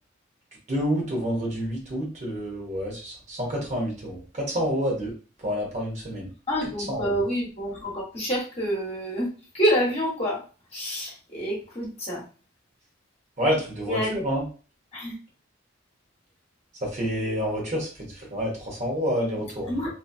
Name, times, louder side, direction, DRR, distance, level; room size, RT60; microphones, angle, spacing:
voice 1, 0.7-5.1 5.4-6.3 6.9-7.2 13.4-14.4 16.8-19.9, equal, 35° right, -2 dB, 1.0 m, -28 dB
voice 2, 6.5-9.3 9.5-10.4 10.7-12.2 13.9-14.1 14.9-15.2 19.7-19.9, equal, 30° left, -4 dB, 1.1 m, -27 dB
2.8 x 2.8 x 2.6 m, 0.36 s
head